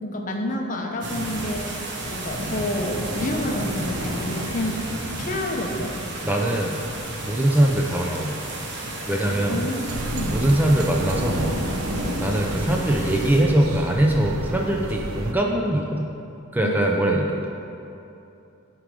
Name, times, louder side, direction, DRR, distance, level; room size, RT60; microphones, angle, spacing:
voice 1, 0.0-4.8 5.2-5.9 9.5-10.4 12.0-12.2 16.6-17.2, left 1 dB, 40° left, 2 dB, 0.8 m, -29 dB
sound 1, 1.0-13.4, right 1 dB, 55° right, 1.0 m, -31 dB
voice 2, 6.2-6.8 7.2-8.3 9.1-9.7 10.3-11.5 12.2-16.1 16.5-17.3, right 1 dB, 10° right, 0 dB, 0.5 m, -22 dB
sound 2, 9.9-15.3, right 3 dB, 85° right, 0.5 m, -32 dB
9.2 x 5.0 x 4.9 m, 2.8 s
head